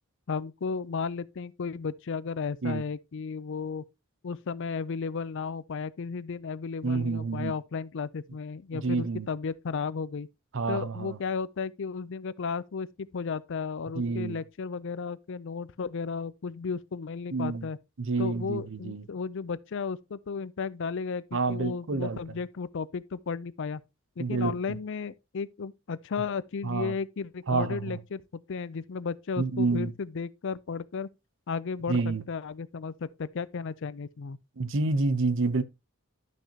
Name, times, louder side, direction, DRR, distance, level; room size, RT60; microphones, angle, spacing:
voice 1, 0.3-3.8 4.2-10.3 10.7-17.8 18.2-23.8 24.2-31.1 31.5-32.0 32.3-34.4, left 5 dB, 60° left, 0.5 m, -34 dB
voice 2, 6.8-7.5 8.7-9.3 10.5-11.2 14.0-14.4 17.3-17.7 18.0-19.0 21.3-22.2 24.2-24.5 26.6-26.9 27.5-28.0 29.4-29.9 31.9-32.2 34.6-35.6, right 3 dB, 60° right, 0.7 m, -28 dB
12.0 x 5.9 x 2.8 m
head